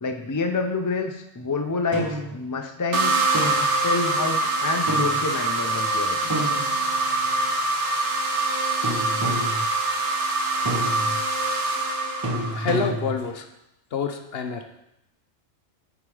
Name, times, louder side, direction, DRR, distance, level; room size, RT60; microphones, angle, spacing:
voice 1, 0.0-3.1 3.7-6.3, left 4 dB, 25° left, 5 dB, 0.4 m, -28 dB
sound 1, 1.9-2.3 3.3-3.8 4.9-5.3 6.3-7.1 8.8-9.6 10.6-11.2 12.2-13.2, equal, 20° right, 0.8 m, -29 dB
sound 2, 2.9-12.9, right 2 dB, 65° right, 1.3 m, -24 dB
voice 2, 12.5-13.5 13.9-14.6, left 5 dB, 55° left, 6 dB, 0.8 m, -27 dB
8.8 x 4.8 x 4.9 m, 0.86 s
omnidirectional pair, 1.3 m